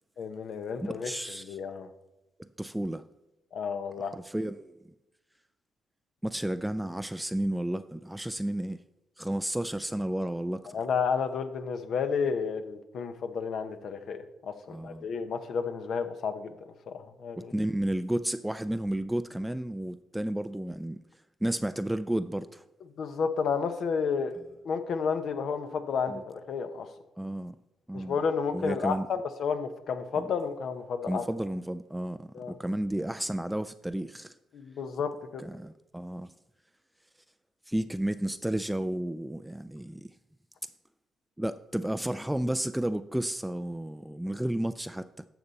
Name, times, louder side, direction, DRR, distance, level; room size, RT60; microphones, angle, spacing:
voice 1, 0.2-1.1 1.4-1.9 3.5-4.2 10.7-16.5 16.9-17.5 23.0-24.4 24.6-26.9 27.9-31.3 32.3-32.5 34.5-35.4, left 6 dB, 65° left, 0.9 m, -31 dB
voice 2, 0.8-1.6 2.4-3.0 4.0-4.7 6.2-8.8 9.2-10.8 14.7-15.1 17.5-21.0 21.4-22.6 26.1-26.2 27.2-27.6 27.9-28.2 28.5-29.1 30.1-30.3 31.1-34.3 35.4-36.3 37.7-40.1 41.4-45.2, right 1 dB, 5° right, 0.3 m, -32 dB
12.0 x 6.9 x 4.1 m
cardioid pair, 90°, 0 cm